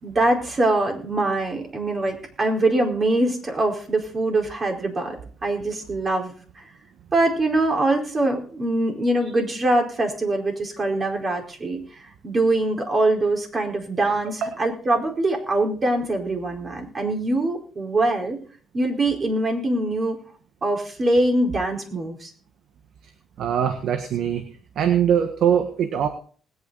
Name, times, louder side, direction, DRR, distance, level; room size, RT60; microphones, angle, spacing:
voice 1, 0.0-5.1 5.4-6.7 7.1-18.4 18.7-20.2 20.6-22.3, right 2 dB, 35° right, 2 dB, 4.6 m, -23 dB
voice 2, 23.4-24.5 24.7-26.1, right 9 dB, 75° right, 7 dB, 1.5 m, -22 dB
20.0 x 9.4 x 4.1 m, 0.42 s
cardioid pair, 90°, 0 cm